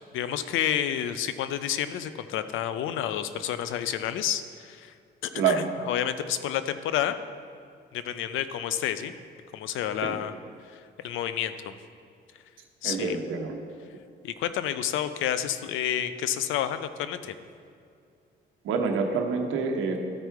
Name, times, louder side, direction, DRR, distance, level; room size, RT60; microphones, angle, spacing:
voice 1, 0.1-4.9 5.2-7.1 7.9-9.1 9.5-10.3 10.6-11.7 12.8-13.2 14.2-17.3, left 10 dB, 85° left, 11 dB, 0.5 m, -30 dB
voice 2, 5.3-5.7 10.0-10.2 12.8-13.6 18.6-20.0, right 5 dB, 85° right, 3 dB, 1.0 m, -27 dB
13.0 x 4.5 x 4.6 m, 2.4 s
cardioid pair, 90°, 20 cm